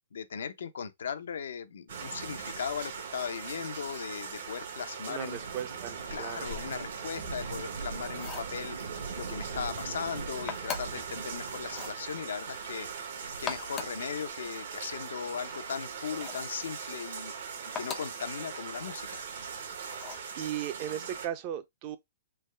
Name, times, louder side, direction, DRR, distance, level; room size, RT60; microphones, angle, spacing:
voice 1, 0.1-5.4 6.1-8.8 9.2-12.9 13.4-17.3 17.8-19.1, left 7 dB, 80° left, 0.5 m, -38 dB
sound 1, 1.9-21.3, right 5 dB, 70° right, 1.0 m, -40 dB
voice 2, 5.1-6.5 20.4-22.0, right 11 dB, 35° right, 0.5 m, -37 dB
sound 2, 8.1-8.6 10.5-11.1 11.7-12.0 13.3-14.0 16.1-16.5 17.7-18.2 19.9-20.3, left 6 dB, 20° left, 0.5 m, -39 dB
3.3 x 2.1 x 3.2 m
hypercardioid pair, 150°, 0 cm